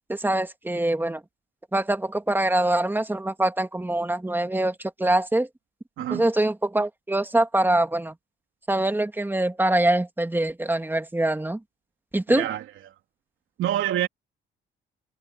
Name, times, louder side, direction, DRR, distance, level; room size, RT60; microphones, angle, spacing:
voice 1, 0.1-1.2 1.7-5.5 6.1-8.1 8.7-11.6 12.1-12.4, right 1 dB, 10° right, 2.6 m, -24 dB
voice 2, 6.0-6.3 12.3-12.6 13.6-14.1, right 12 dB, 80° right, 3.4 m, -26 dB
cardioid pair, 90°, 20 cm